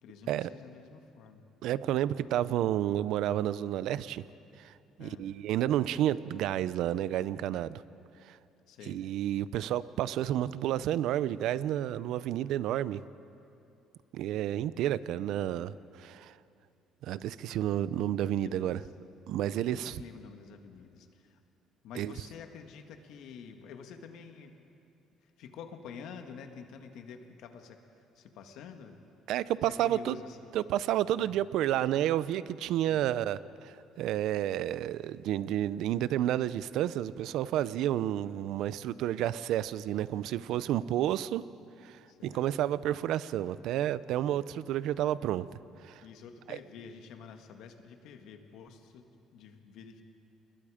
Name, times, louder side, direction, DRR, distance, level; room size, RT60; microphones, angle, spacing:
voice 1, 0.0-1.4 5.0-5.3 8.7-9.0 18.4-18.9 19.6-21.4 21.8-24.6 25.2-29.0 29.7-30.4 31.2-31.4 32.8-33.1 40.5-40.8 42.1-42.4 44.3-44.4 46.0-50.0, left 6 dB, 70° left, 5 dB, 1.9 m, -48 dB
voice 2, 1.6-4.2 4.6-4.7 5.0-7.8 8.2-8.4 8.9-13.0 14.1-16.3 17.0-18.8 19.3-19.9 22.0-22.1 29.3-30.2 30.5-41.4 41.8-45.5 45.8-46.0 46.5-46.6, right 12 dB, 70° right, 17 dB, 0.6 m, -30 dB
29.0 x 20.5 x 5.1 m, 2.7 s
cardioid pair, 140°, 0 cm